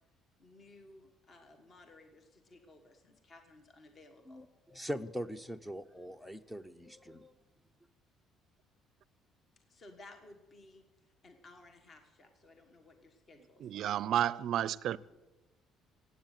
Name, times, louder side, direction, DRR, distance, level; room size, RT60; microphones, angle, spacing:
voice 1, 0.4-4.6 9.6-13.9, left 2 dB, 30° left, 1.4 m, -58 dB
voice 2, 4.3-7.3, equal, 5° left, 0.6 m, -42 dB
voice 3, 13.6-15.0, right 11 dB, 55° right, 0.5 m, -31 dB
17.5 x 8.4 x 9.1 m
cardioid pair, 150°, 0 cm